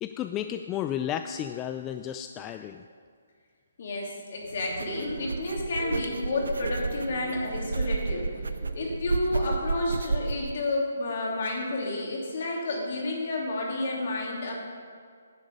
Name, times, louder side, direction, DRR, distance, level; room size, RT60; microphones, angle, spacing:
voice 1, 0.0-2.8, left 10 dB, 20° left, 7 dB, 0.3 m, -33 dB
voice 2, 3.8-8.3 8.7-14.5, left 2 dB, 55° left, -2 dB, 2.8 m, -30 dB
sound 1, 4.4-10.6, right 3 dB, 90° right, 0.6 m, -32 dB
sound 2, 4.8-8.9, right 2 dB, 50° right, 2.6 m, -41 dB
10.5 x 8.3 x 5.3 m, 2.1 s
hypercardioid pair, 155°, 0 cm